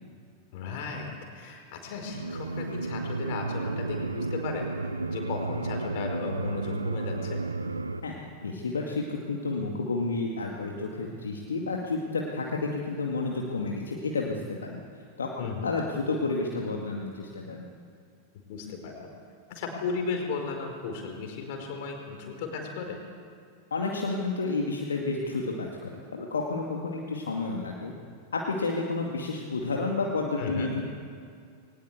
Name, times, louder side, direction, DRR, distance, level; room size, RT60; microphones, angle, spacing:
voice 1, 0.5-4.7 5.1-7.4 15.4-15.7 18.5-19.1 19.5-23.0 30.4-30.7, left 4 dB, 50° left, 3 dB, 4.8 m, -35 dB
sound 1, 2.1-8.0, right 3 dB, 80° right, 0.9 m, -32 dB
voice 2, 8.4-14.8 15.2-17.7 23.7-25.7 26.1-27.9 28.3-30.8, left 3 dB, 70° left, 0 dB, 2.2 m, -30 dB
21.5 x 19.0 x 8.2 m, 2.3 s
figure-of-eight pair, 90°, 0 cm